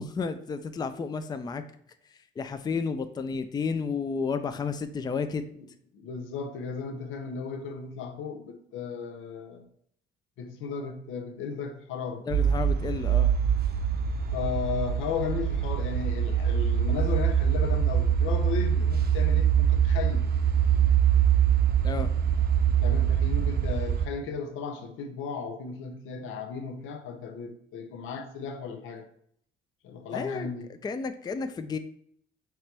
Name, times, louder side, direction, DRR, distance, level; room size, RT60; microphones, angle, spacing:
voice 1, 0.0-1.6 2.4-5.5 12.3-13.3 18.7-18.8 21.8-22.1 30.1-30.5 30.8-31.8, left 5 dB, 20° left, 0.3 m, -31 dB
voice 2, 5.9-9.7 10.4-12.3 14.3-20.3 22.8-29.1 29.8-30.7, left 6 dB, 85° left, 0.6 m, -35 dB
sound 1, 12.3-24.0, right 8 dB, 50° right, 0.6 m, -24 dB
4.4 x 3.0 x 3.3 m
cardioid pair, 90°, 20 cm